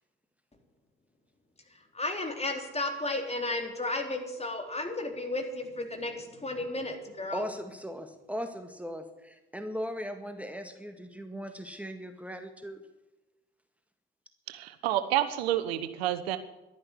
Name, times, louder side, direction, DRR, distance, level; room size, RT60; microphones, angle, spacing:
voice 1, 1.9-7.5, left 2 dB, 20° left, 4 dB, 3.8 m, -33 dB
voice 2, 7.3-12.8, equal, 5° right, 7 dB, 1.8 m, -38 dB
voice 3, 14.5-16.4, right 12 dB, 85° right, 12 dB, 1.0 m, -29 dB
12.0 x 11.0 x 9.8 m, 1.0 s
hypercardioid pair, 60°, 30 cm